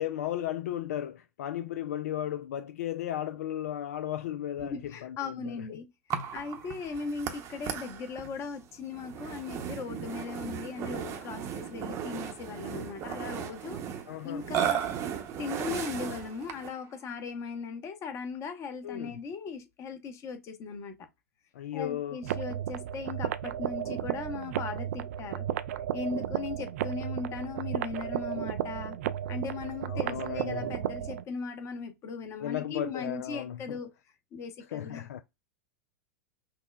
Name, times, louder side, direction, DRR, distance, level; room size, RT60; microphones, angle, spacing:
voice 1, 0.0-5.7 14.1-14.5 18.8-19.2 21.5-22.2 29.9-30.7 32.4-33.8 34.7-35.2, left 11 dB, 65° left, 0.3 m, -35 dB
voice 2, 4.6-5.9 6.3-14.9 15.4-21.0 21.7-25.4 25.9-29.0 29.3-33.9 34.3-35.1, left 5 dB, 35° left, 0.9 m, -38 dB
Burping eructation, 6.1-16.8, right 9 dB, 35° right, 0.8 m, -36 dB
sound 1, 22.2-31.2, right 11 dB, 60° right, 0.3 m, -34 dB
5.7 x 2.1 x 2.3 m
figure-of-eight pair, 95°, 9 cm